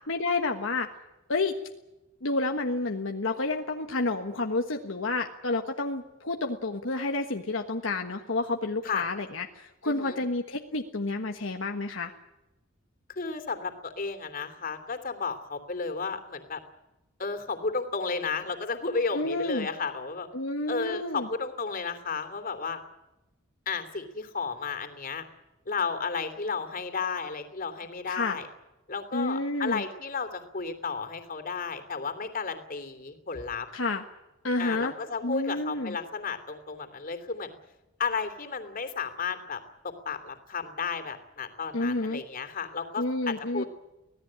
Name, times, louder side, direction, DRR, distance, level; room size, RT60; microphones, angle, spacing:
voice 1, 0.1-0.9 1.3-1.6 2.2-12.1 19.1-19.7 20.3-21.3 28.1-28.4 29.1-29.8 33.7-34.0 34.4-34.9 35.2-36.0 41.7-42.2 43.0-43.6, left 2 dB, 75° left, 4 dB, 1.4 m, -30 dB
voice 2, 9.8-10.2 13.1-16.6 17.2-20.3 20.7-22.8 23.7-25.2 25.7-28.5 28.9-33.7 34.6-37.5 38.0-43.7, left 5 dB, 45° left, 8 dB, 3.1 m, -33 dB
25.0 x 17.5 x 8.8 m, 0.99 s
head